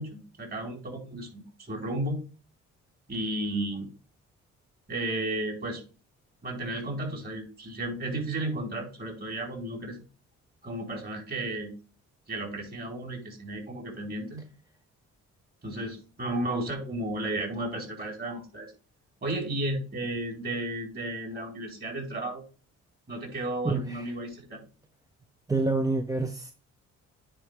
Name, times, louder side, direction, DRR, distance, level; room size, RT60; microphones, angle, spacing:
voice 1, 0.0-2.2 3.1-3.9 4.9-5.8 6.4-10.0 10.6-11.8 12.3-14.5 15.6-18.7 19.2-22.4 23.1-24.7, right 1 dB, 30° right, 4.3 m, -33 dB
voice 2, 23.6-24.1 25.5-26.5, right 3 dB, 10° right, 0.7 m, -27 dB
9.9 x 4.6 x 3.4 m
cardioid pair, 90°, 30 cm